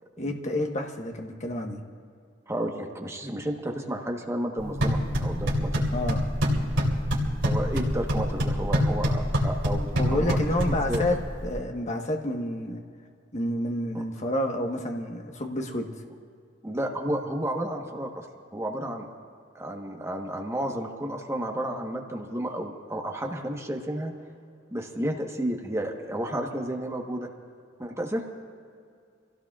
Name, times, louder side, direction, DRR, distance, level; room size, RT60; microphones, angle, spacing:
voice 1, 0.2-1.8 5.9-6.3 9.9-11.2 11.4-12.8 13.3-15.9, left 1 dB, 40° left, 2 dB, 1.3 m, -29 dB
voice 2, 2.5-5.8 7.4-10.4 10.9-11.1 13.9-14.0 16.6-18.3 18.5-19.1 19.5-24.1 24.7-27.3 27.8-28.2, right 1 dB, 15° right, 1 dB, 1.2 m, -32 dB
sound 1, 4.6-11.6, equal, 85° right, 3.0 m, -26 dB
27.0 x 16.5 x 2.4 m, 2.3 s
head